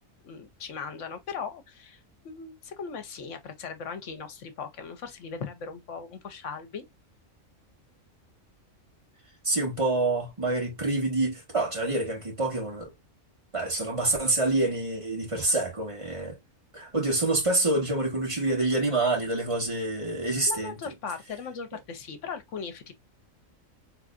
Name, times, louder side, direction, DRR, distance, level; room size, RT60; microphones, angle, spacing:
voice 1, 0.2-2.0 2.2-6.8 20.5-22.9, left 5 dB, 65° left, 1.1 m, -38 dB
voice 2, 9.4-12.9 13.5-16.4 16.7-20.8, right 2 dB, 25° right, 1.9 m, -27 dB
3.9 x 3.4 x 2.4 m
omnidirectional pair, 1.4 m